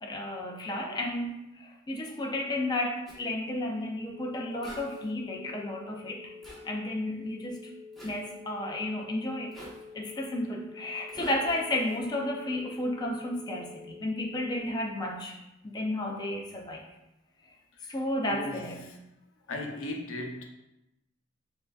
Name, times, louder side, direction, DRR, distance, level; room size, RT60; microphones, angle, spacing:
voice 1, 0.0-6.3 6.6-7.6 8.0-9.5 9.9-15.4 15.6-16.8 17.9-18.9, left 1 dB, 20° left, 0 dB, 0.4 m, -32 dB
Zipper (clothing), 3.1-3.2 4.6-5.1 6.4-6.6 7.9-8.2 9.5-9.8 11.1-12.0, right 1 dB, ahead, 1.1 m, -45 dB
sound 1, 4.1-14.9, left 5 dB, 40° right, 1.0 m, -48 dB
voice 2, 18.2-19.0 19.5-20.4, left 1 dB, 90° left, 1 dB, 0.7 m, -37 dB
6.8 x 2.5 x 2.4 m, 0.92 s
head